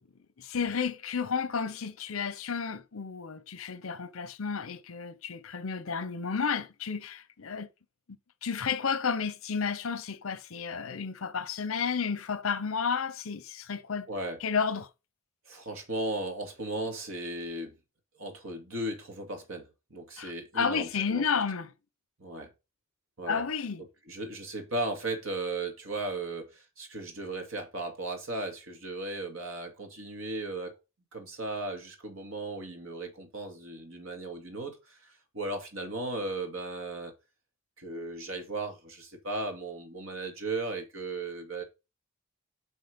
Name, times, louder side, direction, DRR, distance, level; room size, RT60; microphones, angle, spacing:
voice 1, 0.4-7.7 8.4-14.1 14.4-14.9 20.2-21.7 23.3-23.8, left 6 dB, 70° left, 0.7 m, -32 dB
voice 2, 14.1-14.4 15.5-17.7 18.2-19.6 19.9-21.3 22.2-22.5 23.2-23.4 24.1-30.8 31.1-37.1 37.8-41.6, right 2 dB, 70° right, 2.4 m, -36 dB
8.3 x 4.2 x 5.1 m
head